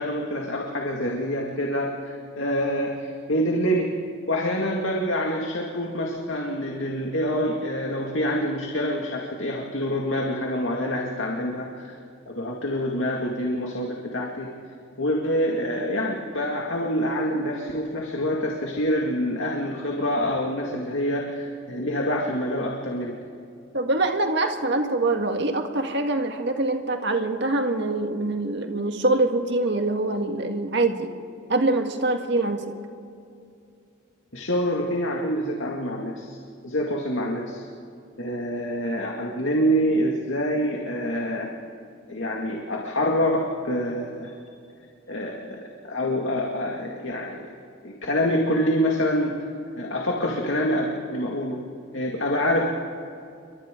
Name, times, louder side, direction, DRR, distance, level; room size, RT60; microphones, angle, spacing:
voice 1, 0.0-3.9 4.3-12.0 12.3-14.5 15.0-23.1 34.3-36.4 36.6-37.6 38.2-41.5 42.1-44.3 45.1-45.6 45.8-47.4 47.8-49.3 49.7-51.6 51.9-52.6, equal, 70° left, 0 dB, 2.2 m, -26 dB
voice 2, 23.7-31.1 31.5-32.8, right 2 dB, 55° right, 4 dB, 1.8 m, -24 dB
29.0 x 24.0 x 3.8 m, 2.5 s
head